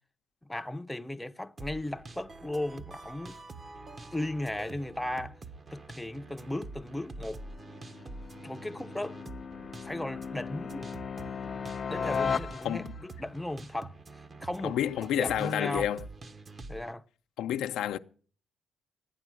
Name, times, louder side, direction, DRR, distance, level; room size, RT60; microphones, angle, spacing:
voice 1, 0.4-3.4 4.1-5.4 5.7-7.4 8.4-9.2 9.8-10.9 11.9-14.0 14.4-14.8 15.2-15.9 16.7-17.0, left 1 dB, 5° left, 0.7 m, -36 dB
sound 1, 1.6-16.9, right 3 dB, 35° right, 1.2 m, -46 dB
sound 2, 6.7-13.1, left 6 dB, 45° left, 0.6 m, -37 dB
voice 2, 14.6-16.0 17.4-18.0, left 11 dB, 85° left, 0.7 m, -30 dB
13.5 x 9.6 x 7.6 m
cardioid pair, 90°, 0 cm